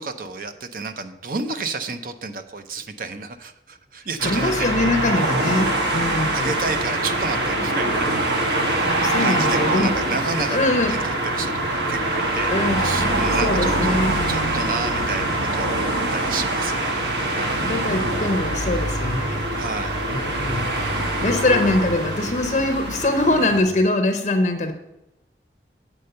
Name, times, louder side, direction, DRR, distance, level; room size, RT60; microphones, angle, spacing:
voice 1, 0.0-5.0 6.3-8.5 9.2-10.6 10.9-12.6 12.8-17.7 19.6-20.0, right 4 dB, 50° right, 8 dB, 0.6 m, -31 dB
voice 2, 4.2-6.5 9.0-9.9 10.5-11.0 12.5-12.9 13.3-14.2 17.6-19.5 20.1-20.7 21.2-24.7, left 2 dB, 40° left, 6 dB, 0.6 m, -22 dB
sound 1, 4.2-23.6, right 1 dB, 75° right, 1.3 m, -24 dB
8.1 x 4.3 x 6.6 m, 0.92 s
head